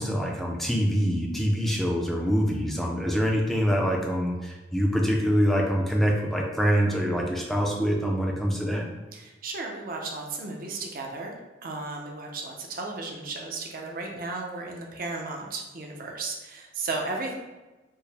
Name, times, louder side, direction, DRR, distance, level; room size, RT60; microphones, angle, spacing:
voice 1, 0.0-8.8, equal, ahead, -1 dB, 0.4 m, -25 dB
voice 2, 9.1-17.3, right 3 dB, 45° right, 1 dB, 0.6 m, -35 dB
4.6 x 2.1 x 3.3 m, 1.1 s
head